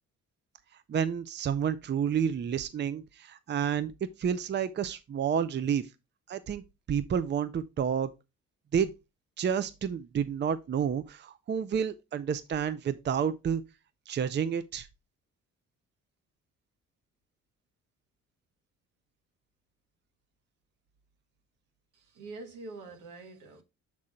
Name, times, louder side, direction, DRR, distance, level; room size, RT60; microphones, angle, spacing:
voice 1, 0.9-3.9 4.2-5.9 6.3-6.6 6.9-8.1 8.7-8.9 9.4-13.6 14.1-14.9, right 8 dB, 35° right, 0.5 m, -30 dB
voice 2, 21.9-23.6, right 3 dB, 85° right, 1.6 m, -45 dB
7.5 x 3.8 x 4.2 m
cardioid pair, 90°, 30 cm